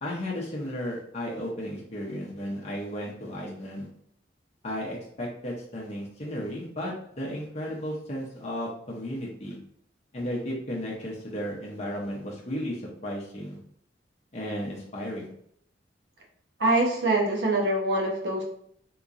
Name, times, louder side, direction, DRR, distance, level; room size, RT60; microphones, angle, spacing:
voice 1, 0.0-3.9 4.6-9.6 10.1-13.6 14.3-15.3, equal, 35° left, -3 dB, 0.7 m, -34 dB
voice 2, 16.6-18.4, right 2 dB, 70° right, -1 dB, 0.9 m, -24 dB
3.7 x 2.9 x 2.5 m, 0.67 s
head